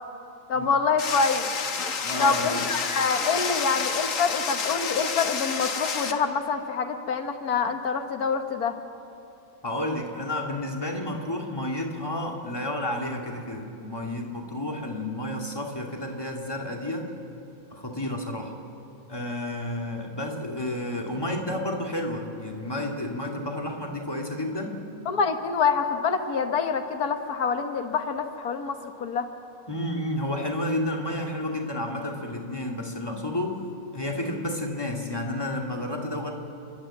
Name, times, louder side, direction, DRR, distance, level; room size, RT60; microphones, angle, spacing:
voice 1, 0.5-1.5 2.2-8.8 25.1-29.3, left 5 dB, 90° left, 7 dB, 1.8 m, -26 dB
sound 1, 1.0-6.1, left 5 dB, 60° left, 1.6 m, -29 dB
voice 2, 2.0-2.5 9.6-17.1 17.7-18.5 19.1-24.8 29.7-33.6 33.9-36.3, left 1 dB, 15° left, 1 dB, 2.4 m, -31 dB
29.0 x 12.0 x 8.8 m, 2.9 s
omnidirectional pair, 1.6 m